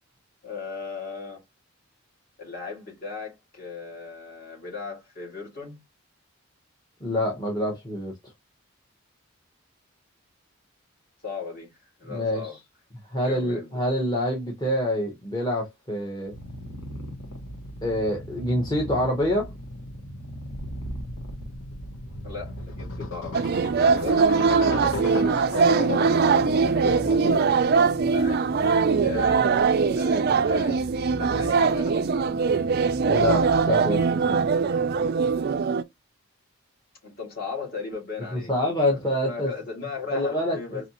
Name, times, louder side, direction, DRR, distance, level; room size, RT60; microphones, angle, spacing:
voice 1, 0.4-1.4 2.4-5.8 11.2-12.6 13.2-13.8 22.2-23.6 24.0-25.0 28.0-28.5 29.0-29.5 29.9-30.9 31.2-32.0 37.0-38.5 38.9-40.9, left 5 dB, 45° left, 1.8 m, -37 dB
voice 2, 7.0-8.2 12.1-12.5 13.1-16.3 17.8-19.5 25.1-25.3 25.8-26.0 33.1-34.4 38.3-39.5 40.1-40.9, left 1 dB, 20° left, 0.9 m, -26 dB
Purr, 16.3-35.6, equal, 85° left, 1.2 m, -39 dB
sound 1, 20.5-27.6, left 3 dB, 60° left, 0.8 m, -35 dB
sound 2, 23.3-35.8, right 5 dB, 45° right, 0.3 m, -22 dB
4.2 x 2.7 x 2.8 m
head